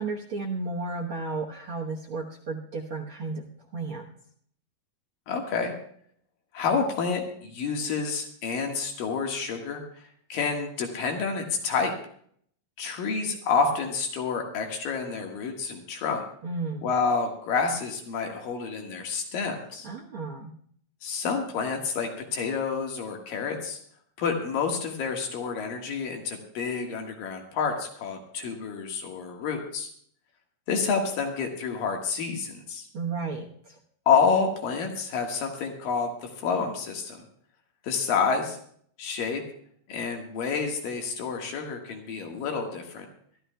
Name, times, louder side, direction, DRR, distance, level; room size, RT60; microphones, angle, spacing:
voice 1, 0.0-3.5 3.7-4.1 16.4-16.9 19.8-20.5 32.9-33.8, right 3 dB, 65° right, -1 dB, 1.3 m, -33 dB
voice 2, 5.3-5.7 6.5-9.8 10.3-11.9 12.8-16.2 16.8-19.9 21.0-23.8 24.2-29.9 30.7-32.8 34.1-37.2 37.8-38.6 39.0-39.4 39.9-43.1, left 5 dB, 75° left, 2 dB, 3.3 m, -28 dB
24.0 x 13.0 x 2.2 m, 0.62 s
omnidirectional pair, 4.0 m